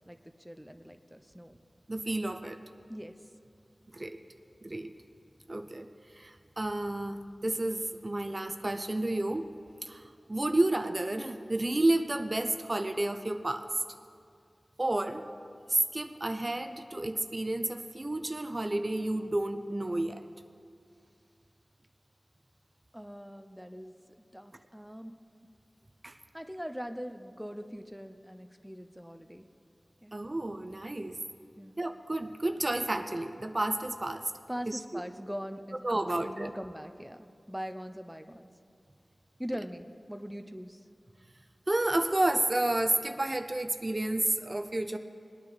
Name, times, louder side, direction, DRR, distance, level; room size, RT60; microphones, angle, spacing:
voice 1, 0.1-1.6 2.9-3.2 22.9-24.0 24.3-25.1 26.3-29.5 30.0-30.2 31.6-31.8 34.5-38.5 39.4-40.8, equal, ahead, 7 dB, 0.7 m, -42 dB
voice 2, 1.9-2.6 3.9-4.2 4.6-4.9 5.5-5.9 6.2-9.5 9.8-10.0 10.3-13.7 14.8-15.3 15.7-20.2 26.0-26.2 30.1-31.2 31.8-34.3 34.7-34.8 35.8-36.5 41.7-45.0, right 1 dB, 40° right, 8 dB, 0.6 m, -31 dB
20.5 x 9.5 x 4.0 m, 2.3 s
wide cardioid pair, 45°, 0 cm